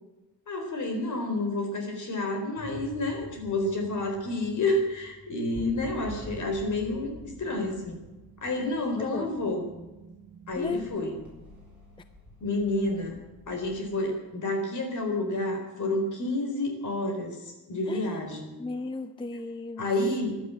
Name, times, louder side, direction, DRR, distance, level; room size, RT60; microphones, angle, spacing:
voice 1, 0.5-7.1 7.4-8.0 8.4-9.6 10.5-11.2 12.4-13.2 13.5-18.6 19.8-20.4, left 2 dB, 55° left, 4 dB, 4.3 m, -29 dB
sound 1, 2.6-14.0, right 1 dB, 5° right, 7.8 m, -47 dB
voice 2, 9.0-9.4 10.6-10.9 17.9-18.2 18.6-19.9, left 3 dB, 15° left, 11 dB, 0.5 m, -35 dB
15.5 x 11.5 x 7.7 m, 1.1 s
wide cardioid pair, 175°, 36 cm